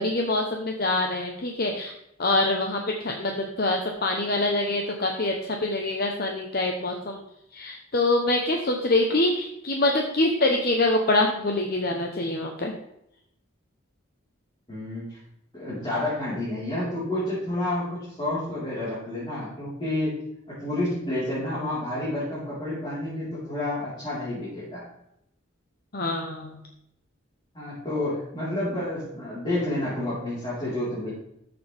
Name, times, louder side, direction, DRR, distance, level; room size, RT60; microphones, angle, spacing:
voice 1, 0.0-1.9 2.2-7.2 7.5-12.7 25.9-26.6, left 2 dB, 50° left, 2 dB, 1.0 m, -25 dB
voice 2, 14.7-15.2 15.5-20.2 20.5-24.8 27.5-31.1, left 1 dB, 25° left, -10 dB, 4.3 m, -30 dB
14.0 x 7.0 x 3.5 m, 0.79 s
head